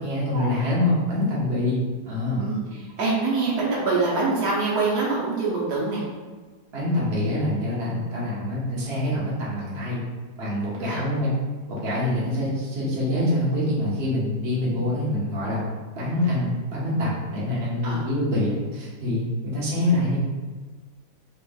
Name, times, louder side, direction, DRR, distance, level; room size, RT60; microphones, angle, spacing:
voice 1, 0.0-2.4 6.7-10.0 10.4-11.3 11.7-15.6 15.9-20.2, left 1 dB, 45° right, -7 dB, 1.3 m, -25 dB
voice 2, 3.0-6.0 10.9-11.0 17.8-18.0, right 3 dB, 75° right, -7 dB, 1.5 m, -24 dB
4.4 x 3.2 x 2.3 m, 1.4 s
omnidirectional pair, 1.7 m